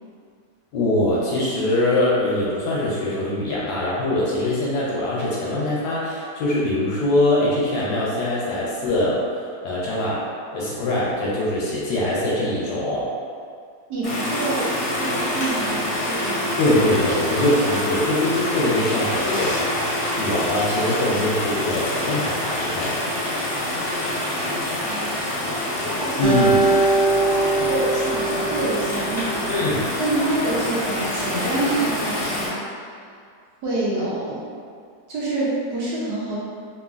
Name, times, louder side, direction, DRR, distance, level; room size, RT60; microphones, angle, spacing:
voice 1, 0.7-9.2 9.6-10.2 10.5-13.1 16.6-23.0 26.2-26.6 29.5-29.8, left 1 dB, 70° left, -6 dB, 1.0 m, -23 dB
voice 2, 13.9-16.6 24.8-25.5 25.8-26.2 26.7-29.4 30.0-32.6 33.6-34.4 35.1-36.4, right 2 dB, 70° right, -7 dB, 1.0 m, -27 dB
sound 1, 14.0-32.5, left 1 dB, 55° left, 0.8 m, -26 dB
Acoustic guitar, 26.2-29.6, right 2 dB, 90° right, 1.3 m, -22 dB
3.0 x 2.5 x 2.4 m, 2.2 s
omnidirectional pair, 2.0 m